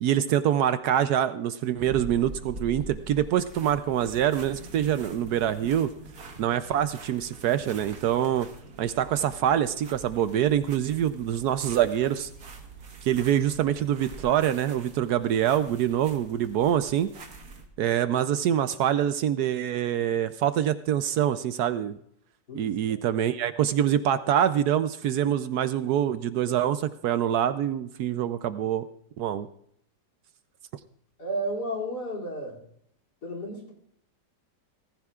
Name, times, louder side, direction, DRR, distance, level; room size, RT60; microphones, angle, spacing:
voice 1, 0.0-5.9 6.4-8.5 8.8-12.3 13.0-17.1 17.8-22.0 22.5-28.8 29.2-29.5, right 10 dB, 70° right, 12 dB, 1.1 m, -25 dB
sound 1, 1.8-17.7, right 3 dB, 55° right, 1.8 m, -45 dB
voice 2, 31.2-32.6 33.2-33.7, right 1 dB, 65° left, -2 dB, 3.4 m, -32 dB
19.0 x 15.0 x 2.4 m, 0.70 s
omnidirectional pair, 1.9 m